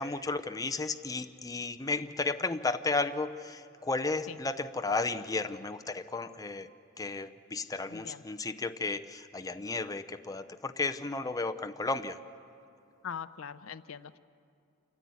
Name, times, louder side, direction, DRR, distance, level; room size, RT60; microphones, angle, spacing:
voice 1, 0.0-6.7 7.0-12.2, left 3 dB, 15° left, 9 dB, 0.6 m, -33 dB
voice 2, 7.9-8.2 13.0-14.2, left 7 dB, 70° left, 14 dB, 0.6 m, -42 dB
28.0 x 13.5 x 9.5 m, 2.5 s
head